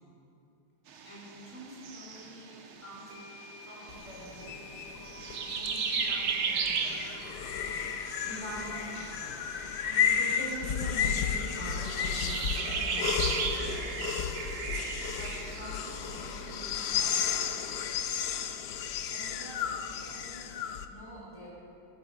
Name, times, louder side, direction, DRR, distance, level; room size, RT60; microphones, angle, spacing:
sound 1, 0.9-17.7, right 6 dB, 85° right, 2.0 m, -37 dB
voice 1, 1.0-4.9 5.4-7.0 8.2-9.5 9.9-14.1 15.1-18.0 19.1-21.5, right 1 dB, 15° left, -5 dB, 4.1 m, -45 dB
sound 2, 2.1-2.2 3.1-14.1, left 2 dB, 45° right, 2.9 m, -52 dB
sound 3, 3.9-20.9, left 7 dB, 65° left, 1.2 m, -33 dB
18.5 x 10.5 x 6.8 m, 2.9 s
omnidirectional pair, 2.3 m